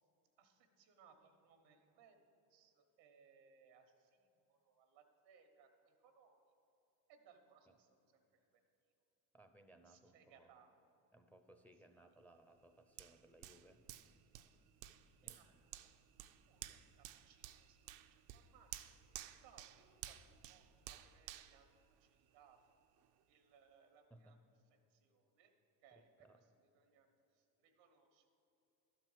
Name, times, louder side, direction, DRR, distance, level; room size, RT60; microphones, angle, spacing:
voice 1, 0.4-2.2 2.5-6.4 7.1-8.2 9.9-10.7 15.2-15.4 15.7-15.8 16.5-18.0 18.3-22.8 23.3-24.4 24.9-25.5 25.8-26.4 26.7-27.1 27.3-28.3, right 6 dB, 85° right, 6 dB, 1.3 m, -68 dB
voice 2, 9.3-10.5 11.1-13.8 15.2-15.6 24.1-24.4 25.9-26.4, right 1 dB, 5° left, 7 dB, 0.6 m, -64 dB
Hands, 13.0-22.5 23.0-23.1, right 13 dB, 70° right, 0.6 m, -54 dB
11.5 x 4.6 x 7.8 m, 3.0 s
hypercardioid pair, 75°, 49 cm